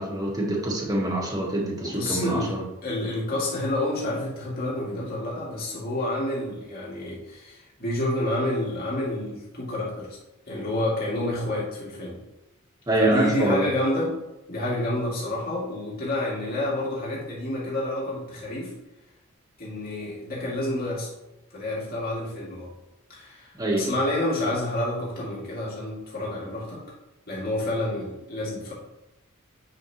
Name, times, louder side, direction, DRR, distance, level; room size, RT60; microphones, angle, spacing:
voice 1, 0.0-2.7 12.9-13.7 23.6-23.9, right 1 dB, 20° right, -2 dB, 1.8 m, -25 dB
voice 2, 1.8-2.5 2.8-10.2 10.5-12.2 13.0-14.2 14.5-18.7 19.6-21.1 21.5-22.7 23.1-26.8 27.3-28.7, left 1 dB, 45° left, -6 dB, 2.8 m, -29 dB
8.7 x 5.8 x 3.3 m, 0.96 s
head